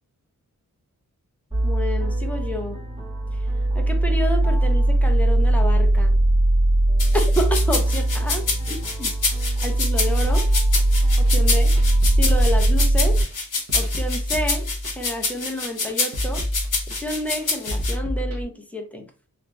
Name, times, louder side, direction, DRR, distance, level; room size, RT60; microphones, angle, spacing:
sound 1, 1.5-13.2, right 1 dB, 20° right, 1.5 m, -20 dB
voice 1, 1.6-2.8 3.7-6.2 7.1-9.1 9.6-10.5 11.2-11.7 12.1-13.2 13.7-14.7 14.9-16.5 16.9-19.1, left 1 dB, 5° left, 0.5 m, -29 dB
sound 2, 7.0-17.9, left 3 dB, 70° left, 1.0 m, -27 dB
sound 3, 10.2-18.4, equal, 50° right, 0.8 m, -29 dB
3.1 x 2.5 x 2.2 m
wide cardioid pair, 125°, 33 cm